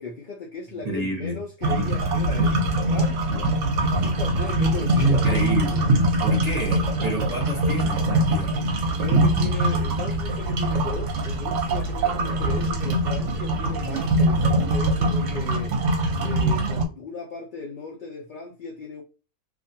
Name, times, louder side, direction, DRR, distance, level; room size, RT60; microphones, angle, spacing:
voice 1, 0.0-2.6 2.9-3.5 4.0-5.4 9.0-15.7 16.2-19.0, left 4 dB, 80° left, 0.4 m, -36 dB
voice 2, 0.8-1.4 4.9-8.8, right 2 dB, 40° right, 0.6 m, -28 dB
sound 1, 1.6-16.8, right 1 dB, 70° right, 0.9 m, -23 dB
2.4 x 2.2 x 2.7 m
omnidirectional pair, 1.5 m